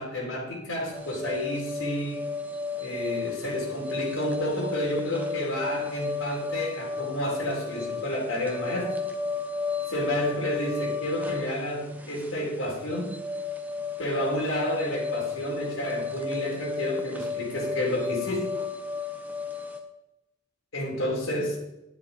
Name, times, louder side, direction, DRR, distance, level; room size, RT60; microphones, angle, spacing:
voice 1, 0.0-2.2 2.8-9.0 9.9-13.2 14.0-18.5 20.7-21.5, equal, 70° left, -3 dB, 4.0 m, -30 dB
sound 1, 0.9-19.8, left 4 dB, 10° right, 1.0 m, -33 dB
11.5 x 9.7 x 4.4 m, 0.90 s
head